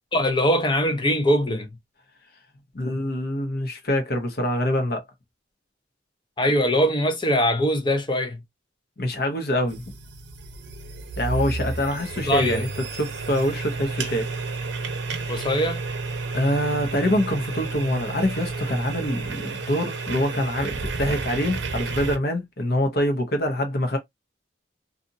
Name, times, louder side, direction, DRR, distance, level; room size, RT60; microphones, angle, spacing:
voice 1, 0.1-1.7 6.4-8.4 12.3-12.6 15.3-15.8, equal, 25° left, 0.6 m, -22 dB
voice 2, 2.7-5.0 9.0-9.8 11.2-12.7 13.0-14.3 16.3-24.0, left 1 dB, 55° left, 0.8 m, -25 dB
sound 1, 9.7-22.2, right 3 dB, 70° right, 0.7 m, -31 dB
2.7 x 2.6 x 2.6 m
head